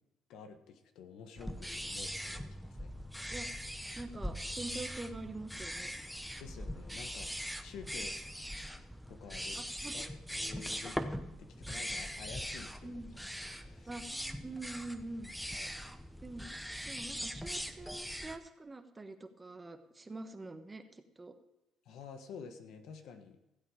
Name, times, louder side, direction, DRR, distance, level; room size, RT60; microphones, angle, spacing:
voice 1, 0.3-3.0 6.4-8.2 9.1-9.6 9.9-10.0 10.3-11.0 11.4-13.0 13.3-13.9 15.5-15.7 21.8-23.4, left 6 dB, 75° left, 7 dB, 1.3 m, -50 dB
sound 1, 1.4-18.4, equal, ahead, 0.9 m, -41 dB
voice 2, 3.9-5.9 9.5-10.0 12.8-13.3 13.9-14.0 14.4-15.3 16.2-16.5 16.8-21.3, right 2 dB, 20° right, 7 dB, 1.2 m, -45 dB
15.5 x 8.0 x 5.0 m, 0.95 s
cardioid pair, 95°, 0 cm